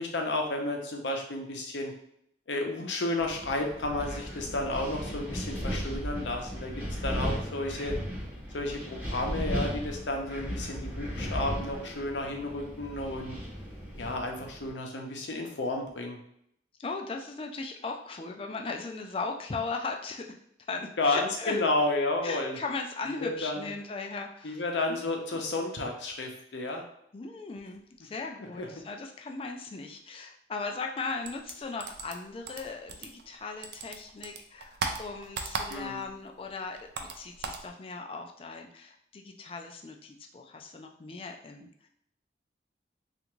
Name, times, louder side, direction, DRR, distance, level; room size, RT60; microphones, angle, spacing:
voice 1, 0.0-1.9 2.5-8.0 8.5-13.4 14.0-16.2 21.0-22.6 23.1-23.7 24.4-26.8 28.6-28.7 35.7-36.0, left 2 dB, 80° left, 2 dB, 0.6 m, -32 dB
Wind, 3.2-14.7, equal, 10° right, 0.7 m, -36 dB
voice 2, 16.8-20.3 20.7-21.6 22.2-24.6 24.9-25.0 25.3-25.4 27.1-41.9, left 4 dB, 30° left, 3 dB, 0.3 m, -38 dB
sound 1, 31.2-33.4 33.6-36.1 36.4-37.7, right 4 dB, 65° right, 0.4 m, -36 dB
3.4 x 2.5 x 3.0 m, 0.75 s
head